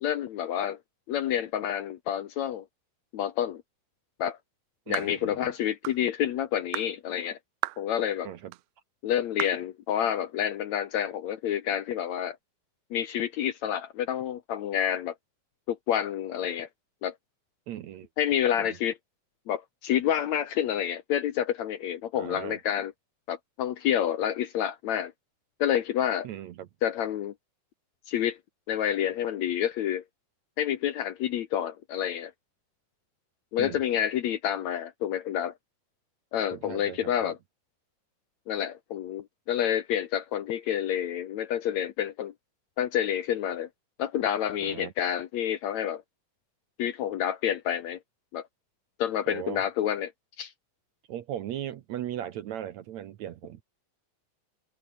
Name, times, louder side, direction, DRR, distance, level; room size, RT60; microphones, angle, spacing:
voice 1, 0.0-0.8 1.1-2.7 3.1-3.6 4.2-4.4 4.9-7.4 7.8-8.3 9.0-12.4 12.9-15.1 15.7-16.7 17.0-17.1 18.2-19.0 19.5-22.9 23.3-25.1 25.6-26.3 26.8-27.3 28.1-28.4 28.7-30.0 30.6-32.3 33.5-35.5 36.3-37.4 38.5-42.3 42.8-43.7 44.0-46.0 46.8-48.0 48.3-48.4 49.0-50.1 50.4-50.5, left 10 dB, 65° left, 1.9 m, -28 dB
voice 2, 4.9-5.5 8.2-8.5 17.7-18.1 18.6-18.8 22.2-22.6 26.2-26.7 33.6-33.8 36.5-37.3 44.6-44.9 49.3-49.6 51.1-53.6, right 11 dB, 65° right, 1.9 m, -38 dB
sound 1, 4.9-5.2 5.8-6.0 6.7-6.9 7.6-7.9 8.5-8.6 9.4-9.6, right 21 dB, 80° right, 1.9 m, -33 dB
omnidirectional pair, 4.1 m